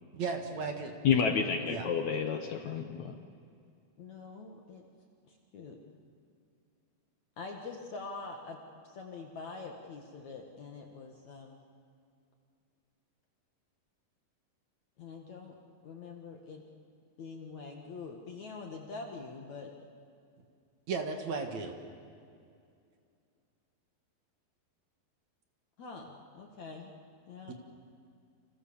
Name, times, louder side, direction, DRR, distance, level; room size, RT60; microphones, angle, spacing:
voice 1, 0.1-0.9 1.7-1.9 20.9-21.7 27.5-27.6, right 4 dB, 50° right, 5 dB, 2.6 m, -35 dB
voice 2, 1.0-3.2, left 6 dB, 70° left, 6 dB, 1.8 m, -29 dB
voice 3, 4.0-4.8 5.3-5.8 7.4-8.6 8.8-11.6 15.0-15.5 15.8-16.6 17.2-19.7 25.8-26.9 27.3-27.5, left 4 dB, 55° left, 2 dB, 2.5 m, -45 dB
29.5 x 28.0 x 7.2 m, 2.4 s
omnidirectional pair, 4.8 m